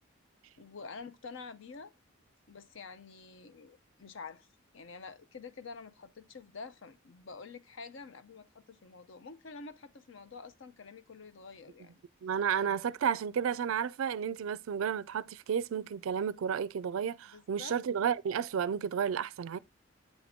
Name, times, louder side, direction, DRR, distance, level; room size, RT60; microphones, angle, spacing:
voice 1, 0.6-1.9 2.5-4.5 4.7-12.0 17.3-17.8, left 4 dB, 65° left, 0.6 m, -48 dB
voice 2, 12.2-19.6, right 7 dB, 75° right, 0.3 m, -32 dB
8.1 x 3.6 x 3.6 m
head